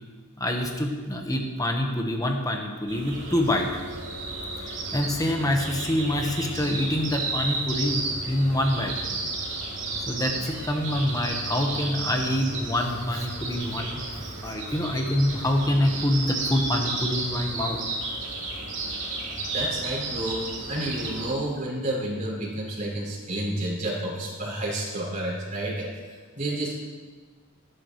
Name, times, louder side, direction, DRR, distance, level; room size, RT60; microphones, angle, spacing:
voice 1, 0.4-3.8 4.6-9.0 10.1-14.0 14.4-17.8, left 1 dB, 15° left, 2 dB, 1.3 m, -26 dB
sound 1, 2.9-21.3, right 2 dB, 60° right, 3.6 m, -33 dB
voice 2, 19.5-25.9 26.3-26.7, right 1 dB, 40° right, -5 dB, 4.6 m, -30 dB
17.5 x 11.0 x 3.2 m, 1.4 s
head